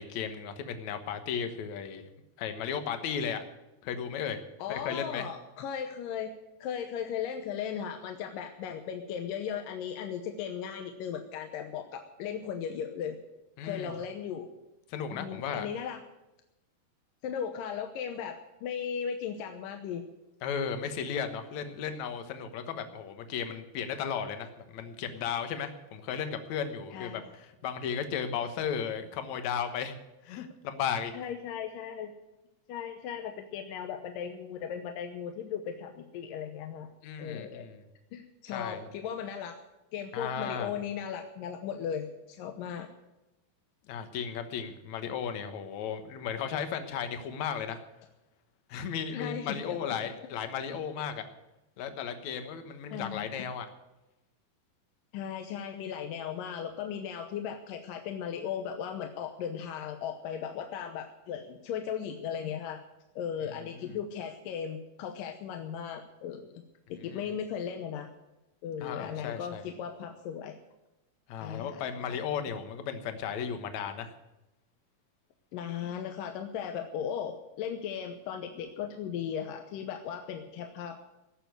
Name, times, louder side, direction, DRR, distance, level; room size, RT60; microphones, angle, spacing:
voice 1, 0.0-2.0 2.4-3.4 3.8-4.4 4.7-5.3 13.6-13.9 14.9-15.7 20.4-30.0 30.2-31.1 37.0-37.8 38.5-38.9 40.1-40.7 43.9-47.8 48.7-51.2 51.8-53.7 63.8-63.9 68.8-69.6 71.3-74.1, left 7 dB, 65° left, 7 dB, 2.4 m, -35 dB
voice 2, 4.6-6.3 6.6-13.2 13.6-14.5 15.1-16.0 17.2-20.0 26.9-27.3 31.1-32.1 32.7-36.9 37.2-37.7 38.1-39.6 39.9-42.9 49.1-49.9 52.9-53.3 55.1-62.8 63.2-66.6 66.9-68.1 68.6-70.6 71.4-71.8 72.1-72.2 75.5-81.0, left 8 dB, 80° left, 5 dB, 2.6 m, -37 dB
17.5 x 6.9 x 9.4 m, 0.96 s
omnidirectional pair, 3.9 m